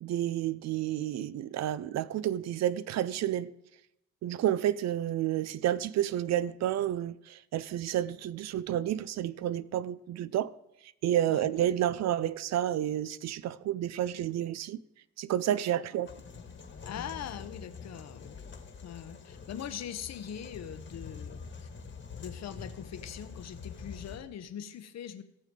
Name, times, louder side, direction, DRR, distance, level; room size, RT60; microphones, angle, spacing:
voice 1, 0.0-3.5 4.2-10.5 11.0-14.8 15.2-16.1, right 11 dB, 60° right, 0.5 m, -30 dB
sound 1, 16.1-24.2, left 5 dB, 40° left, 1.5 m, -45 dB
voice 2, 16.8-18.4 18.8-21.7 22.2-25.2, left 9 dB, 60° left, 0.8 m, -42 dB
17.0 x 6.5 x 3.7 m
cardioid pair, 90°, 30 cm